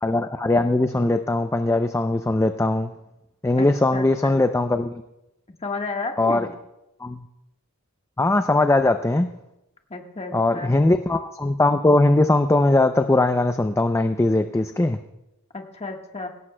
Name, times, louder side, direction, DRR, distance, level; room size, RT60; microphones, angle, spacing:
voice 1, 0.0-2.9 3.4-5.0 6.2-6.5 7.0-7.2 8.2-9.3 10.3-15.0, left 2 dB, 10° left, 8 dB, 0.4 m, -20 dB
voice 2, 3.6-4.4 5.6-6.5 9.9-10.8 15.5-16.3, left 3 dB, 30° left, 3 dB, 1.4 m, -32 dB
20.5 x 17.0 x 2.2 m, 0.92 s
head